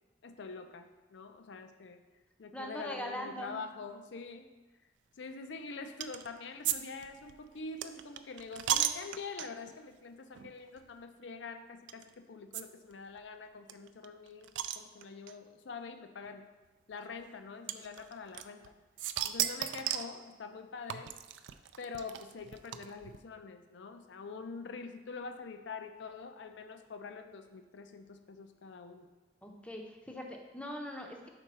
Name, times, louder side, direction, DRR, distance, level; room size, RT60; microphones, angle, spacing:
voice 1, 0.2-2.0 2.4-4.5 5.2-16.4 16.9-18.7 19.2-21.1 21.8-29.1, left 4 dB, 75° left, 7 dB, 0.5 m, -45 dB
voice 2, 2.5-3.6 29.4-31.3, equal, 5° left, 2 dB, 0.5 m, -41 dB
sound 1, 6.0-6.3 6.6-6.8 7.0-9.7 10.3-10.5 10.8-10.9 11.9-12.0 12.5-12.6 12.9-13.0 13.2-13.3 13.7-15.3 16.2-16.3 17.7-18.7 19.0-20.1 20.9-23.2, right 11 dB, 80° right, 0.3 m, -35 dB
5.3 x 4.6 x 4.1 m, 1.2 s
head